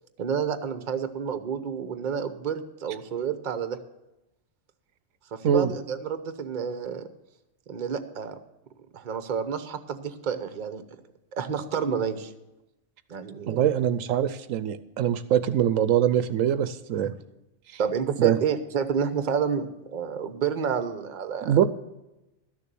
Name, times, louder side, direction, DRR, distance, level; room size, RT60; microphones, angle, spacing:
voice 1, 0.2-3.8 5.3-7.1 7.7-8.4 8.9-10.8 11.4-12.3 13.1-13.6 17.0-17.1 17.8-21.6, right 7 dB, 40° right, 10 dB, 0.8 m, -29 dB
voice 2, 13.5-17.1 17.7-17.8 18.2-18.4 21.4-21.6, right 10 dB, 80° right, 13 dB, 1.0 m, -23 dB
13.0 x 6.9 x 7.5 m, 0.96 s
omnidirectional pair, 1.4 m